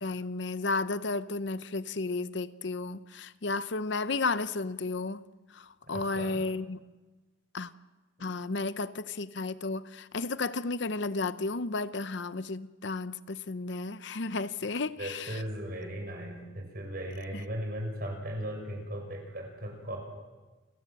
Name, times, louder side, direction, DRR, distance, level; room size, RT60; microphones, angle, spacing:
voice 1, 0.0-5.2 5.5-6.8 7.5-7.7 8.2-15.4, left 3 dB, 60° left, 0.7 m, -33 dB
voice 2, 5.8-6.4 15.0-20.0, equal, 50° right, 6.7 m, -37 dB
29.5 x 18.0 x 7.8 m
head